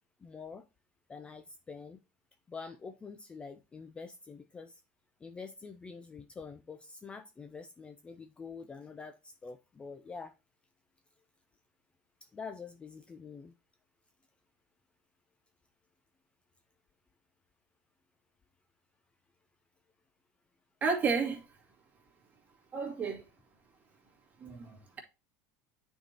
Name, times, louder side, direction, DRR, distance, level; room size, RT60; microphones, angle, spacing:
voice 1, 0.2-0.7 1.1-2.0 2.5-4.8 5.2-10.3 12.2-13.5, left 5 dB, 15° left, 0.4 m, -46 dB
voice 2, 20.8-21.5 22.7-23.2 24.4-25.0, right 5 dB, 25° right, 2.1 m, -32 dB
9.1 x 4.5 x 2.9 m
supercardioid pair, 140°, 7 cm